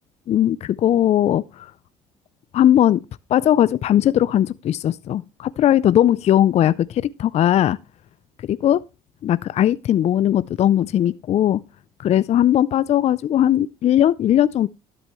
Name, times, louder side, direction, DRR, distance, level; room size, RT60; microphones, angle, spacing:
voice 1, 0.3-1.7 2.5-3.0 3.3-7.8 8.5-8.8 9.2-11.6 12.0-14.7, left 11 dB, 50° left, 0.4 m, -18 dB
12.5 x 7.8 x 3.0 m
supercardioid pair, 80°, 15 cm